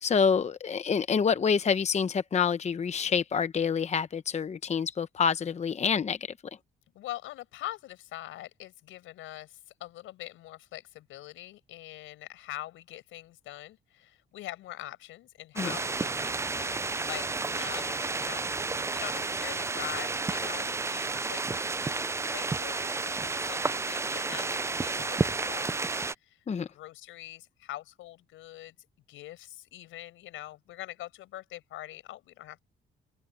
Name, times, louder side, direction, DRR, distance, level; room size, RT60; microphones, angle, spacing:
voice 1, 0.0-6.2 15.6-15.8 26.5-26.7, left 6 dB, 35° left, 0.8 m, -27 dB
voice 2, 6.9-18.4 18.7-26.4 26.7-28.7 29.1-32.6, left 15 dB, 90° left, 5.8 m, -44 dB
sound 1, 15.6-26.1, right 3 dB, 15° right, 0.4 m, -31 dB
open air
cardioid pair, 90°, 20 cm